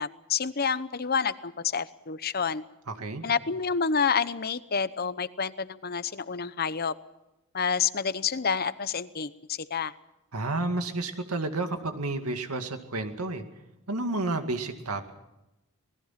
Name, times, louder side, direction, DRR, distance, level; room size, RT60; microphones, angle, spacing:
voice 1, 0.0-2.6 3.2-6.9 7.5-9.9, left 6 dB, 45° left, 15 dB, 0.9 m, -28 dB
voice 2, 2.9-3.3 10.3-13.4 13.9-15.1, right 2 dB, 85° right, 6 dB, 2.2 m, -31 dB
27.0 x 20.5 x 5.9 m, 0.91 s
head